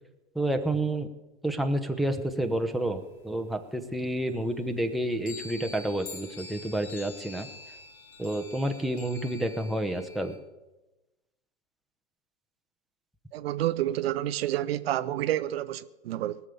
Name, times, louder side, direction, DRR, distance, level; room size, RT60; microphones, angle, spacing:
voice 1, 0.3-1.1 1.4-7.5 8.2-10.4, right 1 dB, ahead, 0.9 m, -29 dB
sound 1, 2.1-3.6 3.9-4.0 4.3-10.4, left 3 dB, 45° left, 3.0 m, -46 dB
voice 2, 13.3-16.4, right 13 dB, 70° right, 0.7 m, -29 dB
19.0 x 7.0 x 7.1 m
hypercardioid pair, 110°, 32 cm